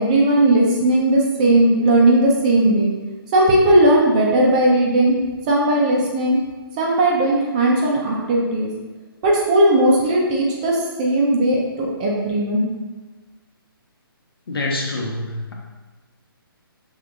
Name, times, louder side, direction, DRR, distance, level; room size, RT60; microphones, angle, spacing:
voice 1, 0.0-2.9 3.3-5.2 5.5-6.4 6.8-8.7 9.2-12.7, right 1 dB, 20° right, -2 dB, 0.5 m, -17 dB
voice 2, 14.5-15.5, left 2 dB, 75° left, -1 dB, 1.1 m, -26 dB
6.0 x 3.5 x 2.5 m, 1.3 s
hypercardioid pair, 165°, 13 cm